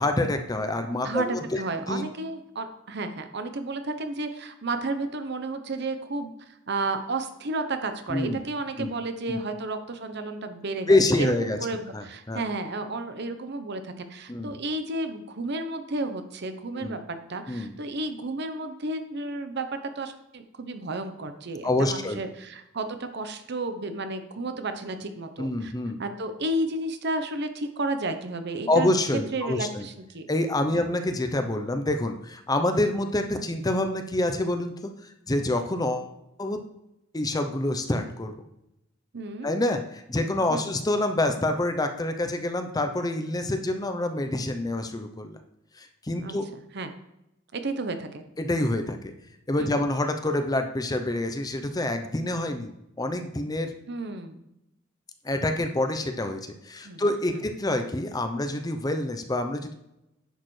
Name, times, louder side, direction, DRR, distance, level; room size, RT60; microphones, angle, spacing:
voice 1, 0.0-1.6 1.9-2.0 8.1-8.4 8.8-8.9 9.3-9.4 10.9-11.6 11.9-12.4 14.3-14.6 16.8-17.0 17.5-17.7 21.6-22.2 25.4-26.0 28.7-29.9 30.3-34.9 35.3-36.1 36.4-36.6 37.1-38.3 39.4-45.4 45.8-46.4 48.4-49.1 49.5-53.7 55.2-56.4 56.6-59.7, left 1 dB, 20° left, 6 dB, 0.6 m, -27 dB
voice 2, 1.0-25.7 26.0-28.9 29.3-30.3 30.7-30.8 39.1-39.5 40.5-40.7 46.2-46.9 47.5-48.2 49.6-49.9 53.9-54.4 56.8-57.0 57.3-57.4, right 2 dB, 60° right, 8 dB, 0.8 m, -32 dB
10.0 x 6.5 x 3.2 m, 0.85 s
head